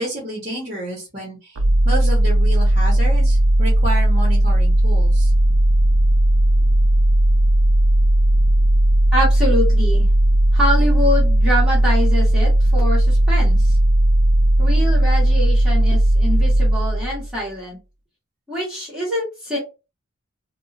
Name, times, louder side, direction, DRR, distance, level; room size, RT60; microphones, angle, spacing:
voice 1, 0.0-1.6 1.8-5.3, right 1 dB, 30° right, -4 dB, 1.0 m, -29 dB
sound 1, 1.6-17.3, right 1 dB, 85° right, 0.5 m, -16 dB
voice 2, 9.1-10.1 10.5-13.8 14.6-17.8 18.5-19.6, left 1 dB, 5° right, -7 dB, 1.3 m, -24 dB
2.7 x 2.3 x 2.4 m, 0.28 s
head